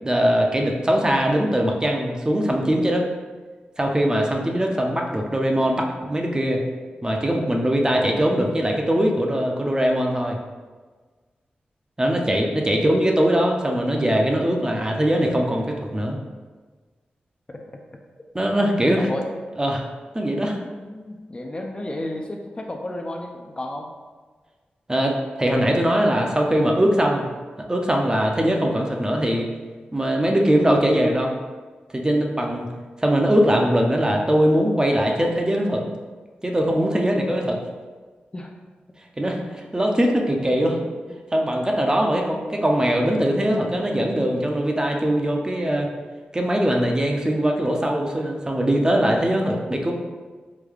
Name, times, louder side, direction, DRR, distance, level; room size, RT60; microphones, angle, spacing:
voice 1, 0.0-3.1 3.8-6.6 7.0-10.4 12.0-16.2 18.3-19.1 19.6-19.8 20.1-20.6 24.9-27.2 27.7-29.5 29.9-31.3 31.9-32.7 33.0-35.8 36.4-37.6 39.2-40.8 41.3-45.9 46.3-49.9, equal, 20° right, 1 dB, 0.5 m, -21 dB
voice 2, 12.3-12.8 17.5-17.6 18.4-18.6 18.9-19.3 20.2-23.9 28.2-28.5 38.3-38.5 39.2-39.3 40.8-41.2, left 1 dB, 30° left, 2 dB, 0.4 m, -34 dB
3.7 x 2.2 x 3.2 m, 1.4 s
cardioid pair, 55°, 3 cm